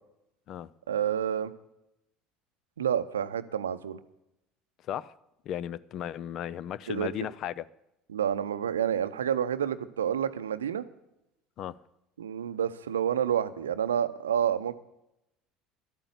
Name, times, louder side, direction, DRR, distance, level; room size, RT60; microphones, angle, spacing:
voice 1, 0.9-1.5 2.8-4.0 6.9-7.1 8.1-10.8 12.2-14.8, right 9 dB, 80° right, 0.6 m, -29 dB
voice 2, 5.5-7.6 11.6-11.8, left 10 dB, 50° left, 0.5 m, -35 dB
12.0 x 8.9 x 8.2 m
figure-of-eight pair, 65°, 0 cm